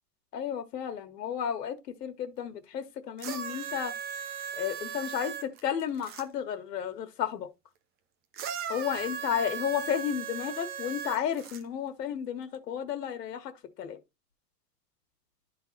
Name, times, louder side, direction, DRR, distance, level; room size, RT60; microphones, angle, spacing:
voice 1, 0.3-3.9 4.5-7.5 8.7-14.0, left 9 dB, 90° left, 1.4 m, -33 dB
sound 1, 3.2-6.2 8.3-11.6 12.5-12.6, right 8 dB, 20° right, 0.7 m, -37 dB
11.5 x 3.9 x 4.0 m
supercardioid pair, 155°, 47 cm